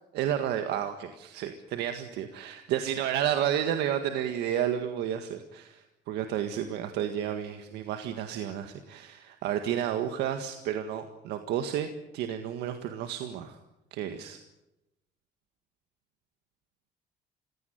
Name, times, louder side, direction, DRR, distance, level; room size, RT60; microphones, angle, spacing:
voice 1, 0.1-11.9 12.1-13.6 13.9-14.4, right 10 dB, 85° right, 7 dB, 1.7 m, -31 dB
25.5 x 17.0 x 9.4 m, 0.95 s
cardioid pair, 110°, 17 cm